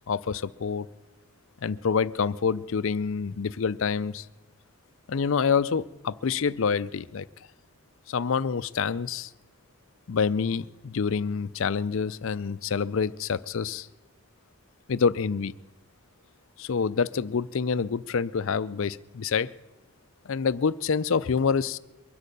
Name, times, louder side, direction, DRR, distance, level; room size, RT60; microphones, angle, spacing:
voice 1, 0.1-0.9 1.6-4.3 5.1-7.3 8.1-9.3 10.1-13.9 14.9-15.5 16.6-19.5 20.3-21.8, left 5 dB, 60° left, 16 dB, 0.4 m, -27 dB
23.0 x 8.4 x 6.7 m, 1.1 s
head